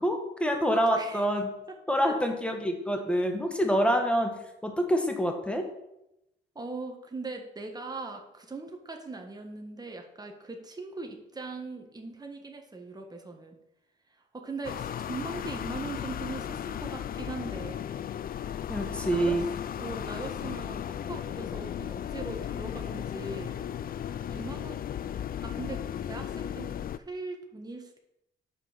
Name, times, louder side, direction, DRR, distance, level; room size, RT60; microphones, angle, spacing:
voice 1, 0.0-1.5 1.9-4.3 4.6-5.6 18.7-19.4, equal, 5° left, 4 dB, 1.8 m, -26 dB
voice 2, 0.7-1.2 2.1-2.2 6.5-13.5 14.3-17.8 19.1-19.4 19.8-23.6 24.1-24.9 25.4-28.0, right 3 dB, 20° right, 3 dB, 1.5 m, -40 dB
sound 1, 14.6-27.0, left 9 dB, 50° left, 0.4 m, -35 dB
8.1 x 5.5 x 5.9 m, 0.85 s
cardioid pair, 85°, 20 cm